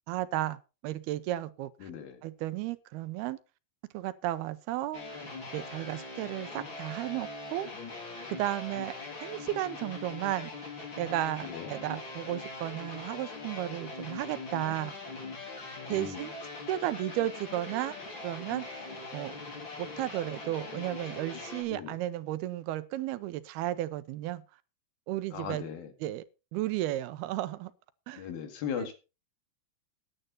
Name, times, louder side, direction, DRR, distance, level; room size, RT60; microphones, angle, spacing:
voice 1, 0.1-1.9 2.2-3.4 3.9-5.2 5.5-7.7 8.3-8.9 9.2-10.5 11.0-14.9 15.9-16.3 16.7-18.0 18.2-18.9 19.1-19.3 19.8-24.4 25.1-25.6 26.0-26.2 26.5-27.7 28.1-28.3 28.8-28.9, right 14 dB, 80° right, 2.7 m, -34 dB
voice 2, 1.8-2.2 11.4-11.7 15.9-16.3 21.7-22.0 25.3-25.9 28.2-28.9, left 8 dB, 70° left, 3.7 m, -38 dB
sound 1, 4.9-21.6, left 3 dB, 30° left, 3.6 m, -42 dB
13.0 x 10.5 x 4.2 m
omnidirectional pair, 4.5 m